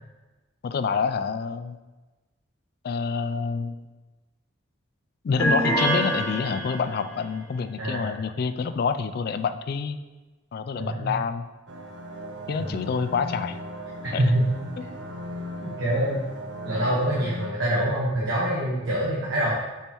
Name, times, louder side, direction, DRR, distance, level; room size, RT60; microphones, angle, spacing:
voice 1, 0.6-1.8 2.8-3.8 5.2-10.0 10.5-11.5 12.5-13.6 14.1-14.2 14.8-14.9, left 5 dB, 50° left, 11 dB, 0.3 m, -27 dB
sound 1, 5.4-7.1, right 1 dB, 10° left, 2.0 m, -25 dB
voice 2, 7.8-8.1 10.8-11.1 12.5-12.7 14.0-14.5 15.6-16.2 16.6-19.5, right 1 dB, 80° right, -6 dB, 1.4 m, -25 dB
sound 2, 11.7-17.5, equal, 60° right, 0.8 m, -37 dB
7.2 x 5.3 x 3.0 m, 1.2 s
head